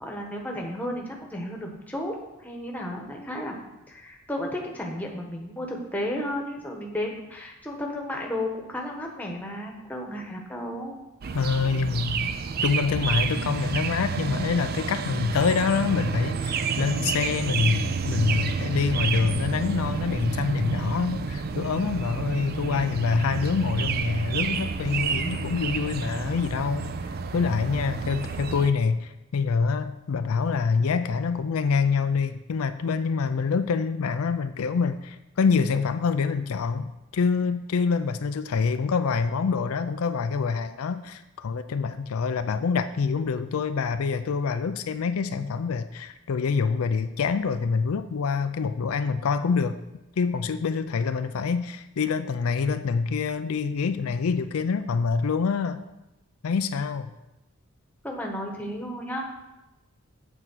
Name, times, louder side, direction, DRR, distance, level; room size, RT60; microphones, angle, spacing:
voice 1, 0.0-3.5 3.9-11.0 58.0-59.2, left 1 dB, 5° left, 0 dB, 1.1 m, -33 dB
sound 1, 11.2-28.7, right 5 dB, 45° right, 0.4 m, -30 dB
voice 2, 11.3-12.3 12.6-26.9 27.3-49.8 50.2-55.8 56.4-57.1, left 5 dB, 75° left, 10 dB, 0.4 m, -26 dB
8.0 x 4.5 x 6.1 m, 0.96 s
head